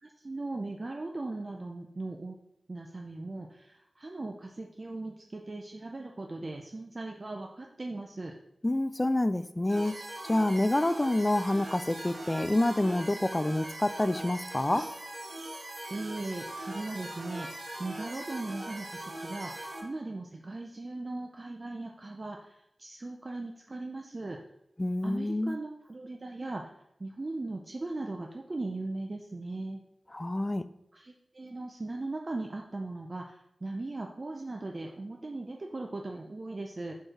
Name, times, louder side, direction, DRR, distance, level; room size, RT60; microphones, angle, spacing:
voice 1, 0.0-2.4 2.7-8.3 15.9-24.4 25.0-26.7 27.0-29.8 30.9-36.9, right 2 dB, 40° right, 1 dB, 0.5 m, -38 dB
voice 2, 8.6-9.9 10.2-14.9 24.8-25.6 30.1-30.7, left 1 dB, 20° left, 13 dB, 0.3 m, -27 dB
sound 1, 9.7-19.8, right 1 dB, 75° right, 1.5 m, -41 dB
4.6 x 4.5 x 4.9 m, 0.78 s
wide cardioid pair, 105°, 0 cm